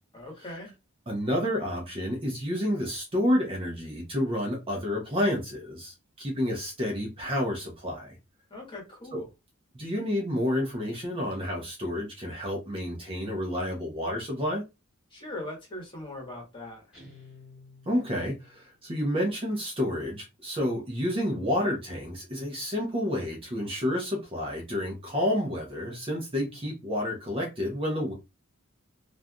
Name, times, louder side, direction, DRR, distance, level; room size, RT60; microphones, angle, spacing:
voice 1, 0.1-0.7 8.5-9.3 15.1-16.9, left 1 dB, 25° left, 1.3 m, -40 dB
voice 2, 1.1-8.2 9.1-9.2 9.7-14.6 17.9-28.1, left 1 dB, 25° right, 0.8 m, -30 dB
Guitar, 16.9-18.6, left 3 dB, 5° right, 1.9 m, -52 dB
3.2 x 2.5 x 2.2 m
head